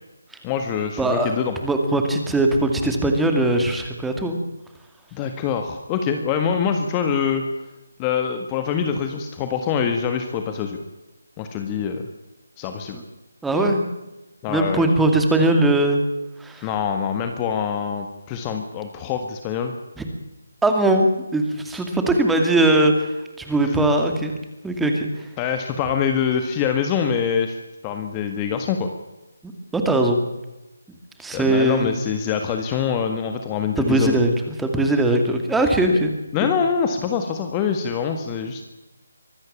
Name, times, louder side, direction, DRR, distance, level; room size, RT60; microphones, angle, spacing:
voice 1, 0.4-1.5 5.1-7.4 8.0-10.8 11.4-12.0 12.6-13.0 14.4-14.9 16.6-19.7 23.6-23.7 25.4-27.5 27.8-28.9 31.3-34.2 36.3-38.6, left 7 dB, 20° left, 6 dB, 1.7 m, -24 dB
voice 2, 1.0-4.4 12.9-13.0 13.4-13.9 14.5-16.0 16.4-16.7 20.0-20.1 20.6-23.1 23.4-24.4 24.6-25.3 29.4-30.2 31.2-31.9 33.8-36.1 36.4-36.5, right 2 dB, 5° right, 4 dB, 2.3 m, -20 dB
24.0 x 13.0 x 8.8 m, 1.0 s
figure-of-eight pair, 155°, 0 cm